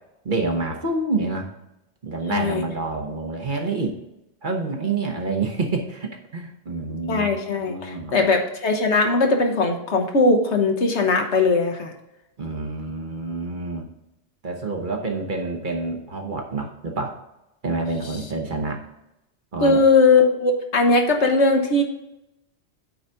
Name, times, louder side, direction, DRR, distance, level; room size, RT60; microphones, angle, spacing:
voice 1, 0.2-1.5 2.0-4.0 4.4-7.4 7.7-8.3 12.4-13.9 14.4-17.1 17.6-18.8 19.5-19.8, right 3 dB, 45° right, 2 dB, 1.2 m, -27 dB
voice 2, 2.3-2.6 7.1-11.9 19.6-21.8, left 3 dB, 70° left, 4 dB, 1.4 m, -19 dB
9.0 x 4.1 x 5.6 m, 0.89 s
omnidirectional pair, 1.2 m